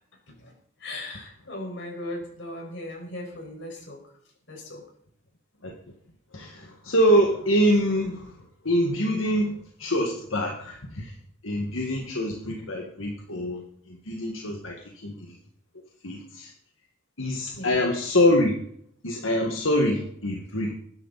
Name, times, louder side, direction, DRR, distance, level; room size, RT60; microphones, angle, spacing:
voice 1, 0.8-4.0 4.5-4.8 17.5-17.8, left 1 dB, 60° left, 0 dB, 5.5 m, -38 dB
voice 2, 6.3-8.3 8.6-11.1 11.4-15.4 16.0-16.5 17.2-18.6 19.0-20.7, equal, 80° left, 1 dB, 1.9 m, -25 dB
21.5 x 11.0 x 4.2 m, 0.67 s
head